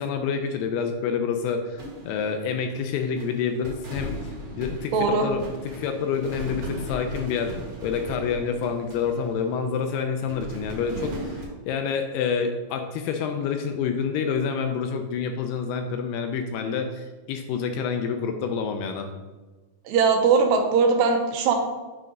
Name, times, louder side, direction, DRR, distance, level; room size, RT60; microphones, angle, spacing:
voice 1, 0.0-7.5 7.8-19.1, left 6 dB, 80° left, 5 dB, 2.4 m, -28 dB
sound 1, 1.8-2.9 3.2-9.8 10.3-11.5, equal, 55° right, 2.1 m, -38 dB
voice 2, 4.9-5.3 19.9-21.6, right 5 dB, 85° right, 4 dB, 2.8 m, -20 dB
7.7 x 3.6 x 5.2 m, 1.2 s
omnidirectional pair, 4.9 m